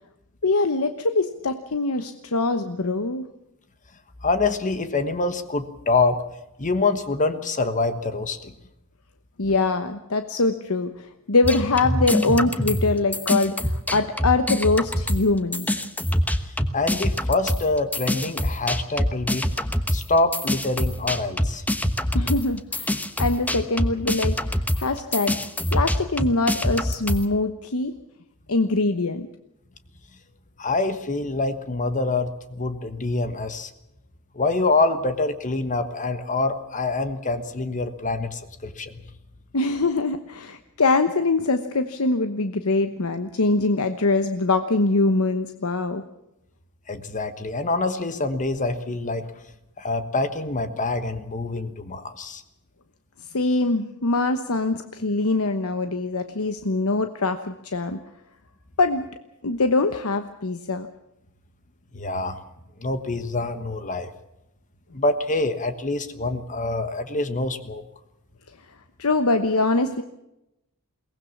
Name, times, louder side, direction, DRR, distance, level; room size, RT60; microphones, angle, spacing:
voice 1, 0.4-3.3 9.4-15.8 22.1-28.0 28.5-29.3 39.5-46.0 53.3-58.0 58.8-59.1 59.4-60.9 69.0-70.0, left 3 dB, 70° left, 8 dB, 1.1 m, -23 dB
voice 2, 4.2-6.2 6.6-8.5 16.7-19.5 19.9-21.6 30.6-33.7 34.3-39.0 46.9-49.3 49.8-52.4 61.9-62.4 62.8-64.1 64.9-67.8, left 3 dB, 35° left, 10 dB, 1.3 m, -25 dB
sound 1, 11.4-15.3 15.5-27.3, equal, 5° left, 1.2 m, -25 dB
22.5 x 19.0 x 7.2 m, 0.88 s
head